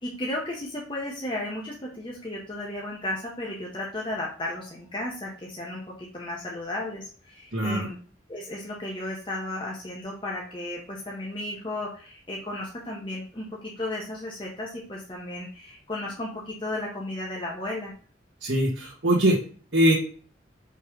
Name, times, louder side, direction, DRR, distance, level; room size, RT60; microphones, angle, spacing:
voice 1, 0.0-8.0 8.3-17.9, left 1 dB, 25° left, -4 dB, 1.3 m, -34 dB
voice 2, 7.5-7.9 18.4-19.4 19.7-19.9, right 1 dB, 75° right, -7 dB, 1.8 m, -22 dB
5.5 x 3.4 x 5.2 m, 0.40 s
head